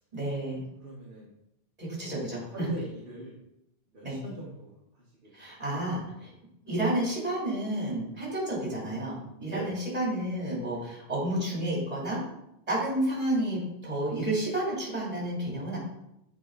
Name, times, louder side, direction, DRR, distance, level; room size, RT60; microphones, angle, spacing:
voice 1, 0.1-0.6 1.8-2.7 4.0-4.2 5.3-6.3 6.6-12.2 12.7-15.8, right 1 dB, 35° right, -6 dB, 2.9 m, -31 dB
voice 2, 0.8-1.3 2.5-3.3 3.9-5.8 6.2-6.3 9.5-9.7 10.7-10.8, right 1 dB, 55° right, -5 dB, 1.4 m, -43 dB
7.6 x 4.1 x 3.8 m, 0.84 s
omnidirectional pair, 1.1 m